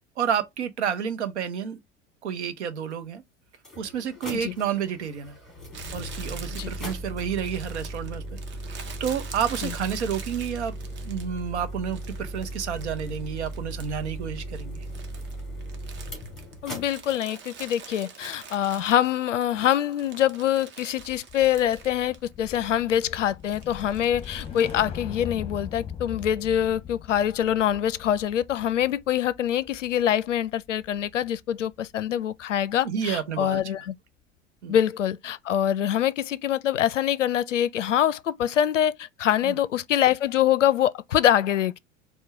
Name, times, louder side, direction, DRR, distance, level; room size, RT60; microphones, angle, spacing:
voice 1, 0.2-1.8 2.2-3.2 3.8-5.4 5.9-8.2 9.0-10.7 11.0-14.8 32.8-33.6 34.6-34.7 39.4-39.6, right 8 dB, 65° right, 0.8 m, -30 dB
sound 1, 2.9-3.0 3.5-17.2, right 1 dB, ahead, 1.9 m, -37 dB
Crumpling crinkling, 5.7-11.5 11.9-14.1 14.4-19.4 19.8-22.2 22.5-22.6 23.4-24.8, right 6 dB, 30° right, 0.9 m, -45 dB
voice 2, 16.6-33.9 34.7-41.8, left 10 dB, 75° left, 0.5 m, -24 dB
sound 2, 21.0-31.4 31.7-32.0, left 7 dB, 15° left, 1.0 m, -41 dB
4.4 x 2.3 x 4.7 m
figure-of-eight pair, 80°, 37 cm